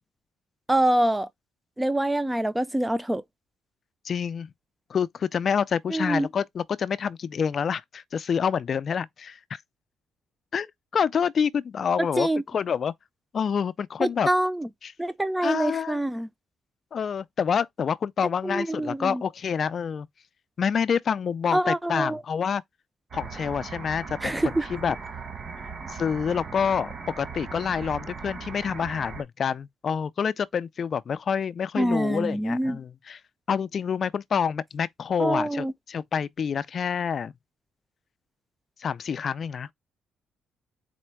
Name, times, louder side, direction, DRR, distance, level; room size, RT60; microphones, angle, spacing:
voice 1, 0.7-1.3 1.8-3.2 5.9-6.3 12.2-12.4 14.0-14.7 15.0-16.3 18.4-19.2 21.5-22.2 24.2-24.7 31.8-32.8 35.2-35.7, right 1 dB, 10° right, 0.5 m, -25 dB
voice 2, 4.0-4.5 4.9-9.6 10.5-12.9 13.3-14.3 14.8-14.9 15.4-16.0 16.9-20.1 20.6-22.6 23.1-24.3 24.7-25.0 25.9-33.2 33.5-37.3 38.8-39.7, left 7 dB, 50° left, 0.4 m, -27 dB
sound 1, 23.1-29.2, right 5 dB, 50° right, 1.2 m, -38 dB
4.3 x 2.1 x 4.5 m
cardioid pair, 90°, 0 cm